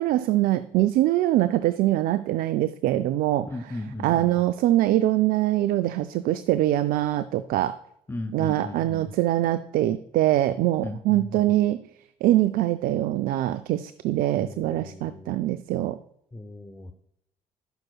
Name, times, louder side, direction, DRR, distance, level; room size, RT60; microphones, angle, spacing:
voice 1, 0.0-3.5 4.0-7.8 8.3-11.8 12.2-16.0, right 14 dB, 60° right, 12 dB, 0.4 m, -23 dB
voice 2, 3.4-4.4 8.1-9.1 10.8-11.6 14.4-15.4 16.3-16.9, left 1 dB, 15° left, 8 dB, 0.7 m, -36 dB
11.5 x 6.1 x 2.3 m, 0.72 s
hypercardioid pair, 55°, 17 cm